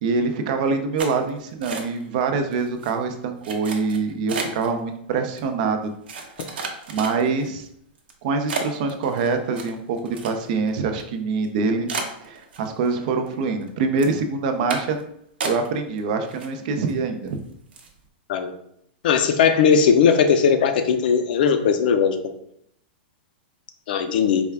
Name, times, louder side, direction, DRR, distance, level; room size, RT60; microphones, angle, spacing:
voice 1, 0.0-5.9 6.5-7.7 8.2-11.9 12.2-15.0 15.4-17.4, right 4 dB, 50° right, 6 dB, 0.5 m, -25 dB
sound 1, 1.0-2.2 2.5-2.9 3.4-4.7 5.4-5.5 6.1-7.5 8.0-8.1 8.5-10.7 11.0-11.1 11.4-11.5 11.9-12.9 13.3-13.7 14.0-14.2 14.7-15.0 15.4-16.0 16.3-16.9 17.3-17.4 17.7-18.0, right 4 dB, 85° right, 0.8 m, -32 dB
voice 2, 19.0-22.2 23.9-24.4, left 6 dB, 60° left, 8 dB, 0.5 m, -18 dB
4.3 x 2.3 x 3.3 m, 0.71 s
supercardioid pair, 155°, 5 cm